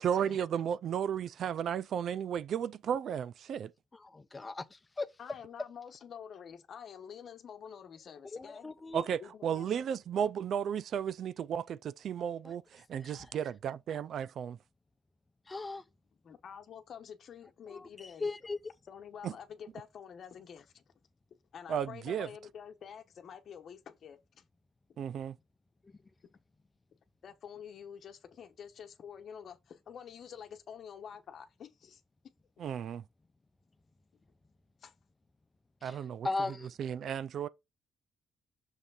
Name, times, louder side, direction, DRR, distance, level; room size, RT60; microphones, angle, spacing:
voice 1, 0.0-3.7 8.9-14.6 19.2-19.3 21.7-22.3 25.0-25.4 32.6-33.0 35.8-36.3 36.8-37.5, right 8 dB, 65° right, 0.4 m, -34 dB
voice 2, 3.9-5.1 8.3-9.1 12.4-12.5 13.0-13.3 15.5-15.8 17.7-18.6 25.8-26.0 35.8-36.7, left 3 dB, 25° left, 0.7 m, -38 dB
voice 3, 5.2-8.7 9.2-9.8 16.2-18.3 18.9-20.8 21.5-24.4 27.2-32.0 34.8-34.9, left 8 dB, 60° left, 1.0 m, -48 dB
6.5 x 3.3 x 5.6 m
cardioid pair, 90°, 0 cm